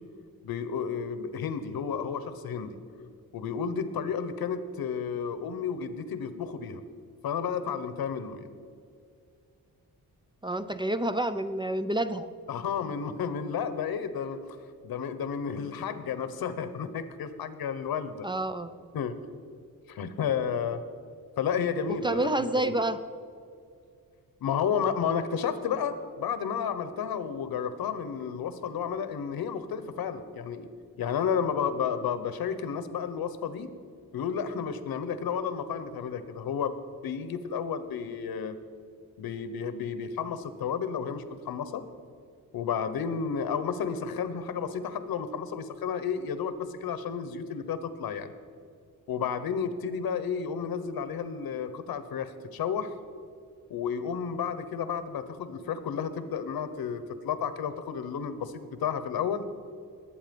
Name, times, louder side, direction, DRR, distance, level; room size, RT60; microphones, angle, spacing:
voice 1, 0.4-2.8 3.3-6.8 7.2-8.5 12.5-14.6 14.8-18.3 18.9-19.2 19.9-20.8 21.4-22.3 22.6-22.7 24.4-30.7 31.0-33.7 34.1-36.7 37.0-38.5 39.2-41.8 42.5-48.3 49.1-52.9 53.7-59.4, left 7 dB, 85° left, 12 dB, 1.1 m, -32 dB
voice 2, 10.4-12.3 18.2-18.8 21.9-23.0, right 1 dB, 15° right, 11 dB, 0.4 m, -29 dB
20.0 x 8.6 x 5.3 m, 2.3 s
wide cardioid pair, 170°, 35 cm